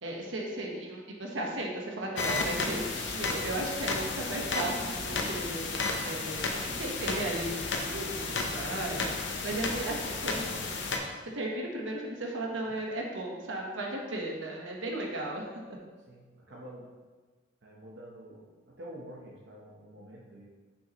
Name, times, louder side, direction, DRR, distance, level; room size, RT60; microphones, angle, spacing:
voice 1, 0.0-10.9 11.3-15.6, right 1 dB, 85° right, 0 dB, 1.1 m, -36 dB
sound 1, 2.2-11.0, left 3 dB, 70° left, 0.7 m, -33 dB
voice 2, 16.1-16.9 17.6-20.5, right 1 dB, 65° right, -3 dB, 0.9 m, -48 dB
6.2 x 5.5 x 2.9 m, 1.4 s
head